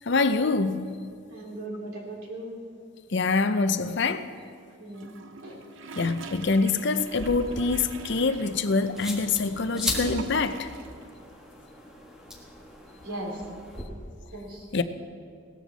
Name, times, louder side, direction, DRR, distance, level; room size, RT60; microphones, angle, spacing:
voice 1, 0.1-1.0 3.1-4.3 5.9-10.7 14.7-14.8, left 4 dB, 55° left, 10 dB, 0.6 m, -25 dB
voice 2, 1.3-2.5 4.8-5.0 5.4-5.6 13.0-13.4 14.3-14.7, right 1 dB, 90° right, -2 dB, 3.5 m, -37 dB
Gurgling / Toilet flush, 4.9-11.0 11.3-11.4, right 3 dB, 65° right, 0.7 m, -43 dB
sound 1, 7.0-13.8, left 1 dB, 5° right, 1.6 m, -38 dB
18.0 x 13.5 x 4.1 m, 2.3 s
head